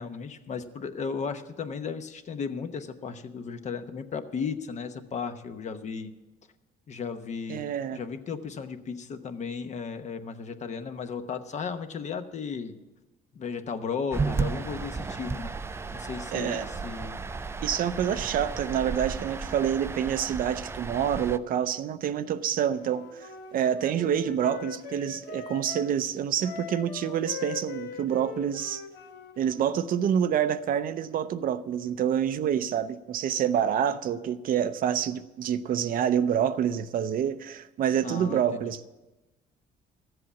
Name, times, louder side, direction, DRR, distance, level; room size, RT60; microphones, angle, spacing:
voice 1, 0.0-6.1 6.9-12.7 13.3-17.2 38.0-38.6, left 5 dB, 45° left, 0.9 m, -35 dB
voice 2, 7.5-8.0 16.3-16.7 17.6-28.8 29.4-38.9, right 9 dB, 55° right, 0.6 m, -27 dB
sound 1, 14.1-21.4, right 4 dB, 15° right, 0.4 m, -34 dB
Wind instrument woodwind instrument, 22.8-25.9 26.4-29.7, left 6 dB, 80° left, 1.1 m, -41 dB
13.5 x 7.8 x 7.0 m
cardioid pair, 110°, 17 cm